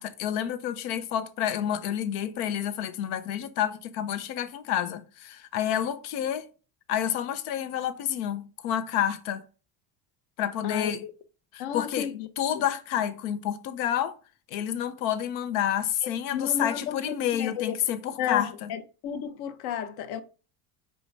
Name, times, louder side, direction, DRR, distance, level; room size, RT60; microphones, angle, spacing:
voice 1, 0.0-6.5 6.9-9.4 10.4-11.0 11.5-12.1 12.4-14.1 14.5-18.7, left 10 dB, 85° left, 1.0 m, -29 dB
voice 2, 10.6-10.9 11.6-12.3 12.6-12.7 16.0-17.8 18.2-20.2, left 9 dB, 65° left, 1.0 m, -33 dB
5.0 x 4.8 x 5.4 m
cardioid pair, 140°, 41 cm